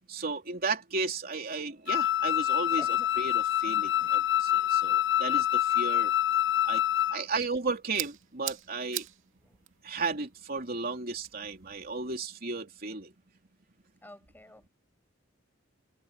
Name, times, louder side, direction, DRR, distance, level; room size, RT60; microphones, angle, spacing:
voice 1, 0.1-2.8 3.2-6.1 6.6-6.8 7.1-9.0 9.8-13.1, right 4 dB, 50° right, 3.2 m, -34 dB
Wind instrument woodwind instrument, 1.9-7.2, left 12 dB, 65° left, 1.0 m, -26 dB
voice 2, 2.8-3.1 3.8-4.2 9.4-9.6 14.0-14.7, left 1 dB, 10° left, 7.2 m, -51 dB
sound 1, 7.1-12.2, right 13 dB, 85° right, 2.4 m, -43 dB
head